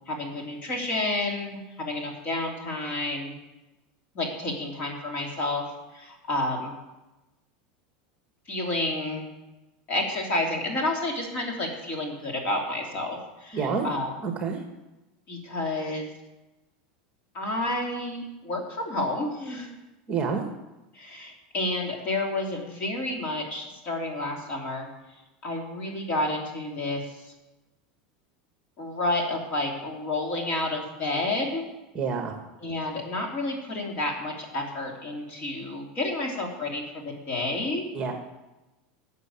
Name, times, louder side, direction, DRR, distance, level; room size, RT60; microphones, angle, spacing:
voice 1, 0.1-3.3 4.1-5.6 5.9-6.7 8.5-9.3 9.9-14.1 15.3-16.1 17.3-19.7 20.9-24.9 25.4-27.2 28.8-31.6 32.6-37.8, left 2 dB, 35° left, 1 dB, 3.3 m, -30 dB
voice 2, 13.5-13.9 14.2-14.6 20.1-20.4 31.9-32.3 37.9-38.1, right 5 dB, 25° right, 4 dB, 1.5 m, -27 dB
13.0 x 6.8 x 8.8 m, 1.0 s
supercardioid pair, 155°, 5 cm